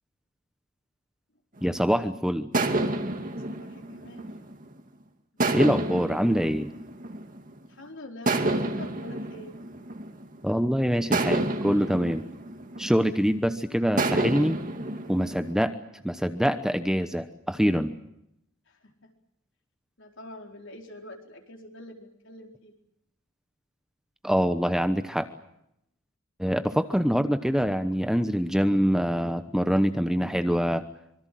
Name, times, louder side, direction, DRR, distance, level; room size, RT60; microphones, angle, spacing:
voice 1, 1.6-2.5 5.5-6.7 10.4-12.3 12.8-14.6 15.1-17.9 24.2-25.3 26.4-30.8, equal, 5° right, 9 dB, 0.9 m, -25 dB
sound 1, 1.6-1.9 2.5-4.8 5.4-7.7 8.3-10.4 11.1-13.4 14.0-15.5, right 2 dB, 40° right, 2.4 m, -29 dB
voice 2, 3.2-4.2 7.7-9.6 18.8-19.1 20.0-22.7, left 1 dB, 60° left, 3 dB, 4.3 m, -45 dB
25.5 x 24.0 x 7.6 m, 0.79 s
head